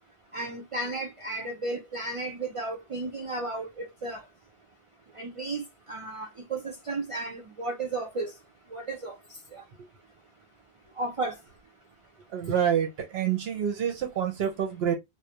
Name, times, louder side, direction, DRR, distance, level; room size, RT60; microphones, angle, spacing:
voice 1, 0.3-4.2 5.2-5.6 5.9-8.3 8.7-9.1 9.5-9.6 11.0-11.3, right 2 dB, 45° right, 0.4 m, -33 dB
voice 2, 12.3-14.9, right 8 dB, 80° right, 0.8 m, -27 dB
2.3 x 2.0 x 2.7 m
omnidirectional pair, 1.0 m